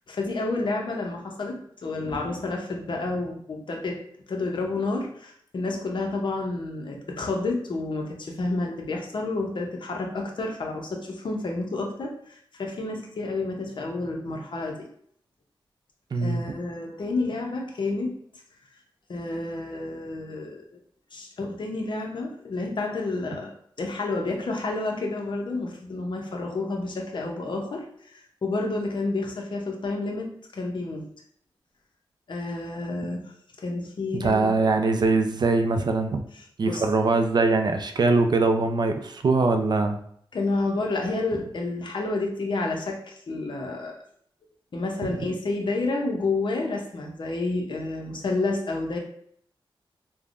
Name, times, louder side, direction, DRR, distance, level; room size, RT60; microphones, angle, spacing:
voice 1, 0.1-4.0 4.3-14.9 16.2-18.2 19.1-20.6 21.1-23.5 23.8-31.1 32.3-33.3 33.6-34.5 36.7-36.8 40.3-44.0 44.7-49.0, left 2 dB, 60° left, 1 dB, 0.6 m, -30 dB
voice 2, 16.1-16.5 34.1-36.2 36.6-40.0, right 3 dB, 50° right, 6 dB, 0.3 m, -22 dB
3.3 x 2.1 x 2.4 m, 0.64 s
wide cardioid pair, 75°, 9 cm